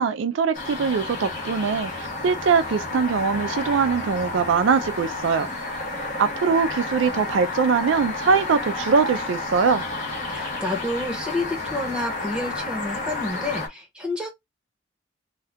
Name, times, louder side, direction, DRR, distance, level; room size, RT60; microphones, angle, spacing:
voice 1, 0.0-5.5 6.2-9.8, right 5 dB, 75° right, 0.4 m, -22 dB
sound 1, 0.5-13.7, left 2 dB, 40° left, 1.1 m, -31 dB
voice 2, 10.3-14.3, left 2 dB, 5° right, 1.0 m, -29 dB
2.7 x 2.3 x 3.4 m
head